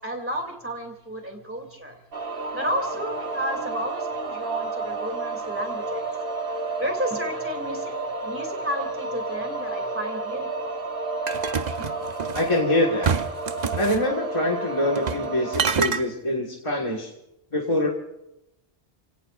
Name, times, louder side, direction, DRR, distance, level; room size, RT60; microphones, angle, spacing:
voice 1, 0.0-2.0 2.5-6.0 6.8-8.0 8.2-10.8 11.8-12.0, equal, 10° right, 3 dB, 2.7 m, -32 dB
sound 1, 2.1-15.6, right 3 dB, 65° right, 1.7 m, -31 dB
sound 2, 11.3-12.6 13.0-14.0 15.0-15.3 15.5-16.0, right 6 dB, 50° right, 0.7 m, -26 dB
voice 2, 12.3-13.1 13.8-17.1 17.5-17.9, left 1 dB, 30° left, -2 dB, 1.8 m, -24 dB
29.5 x 18.0 x 2.5 m, 0.87 s
omnidirectional pair, 1.0 m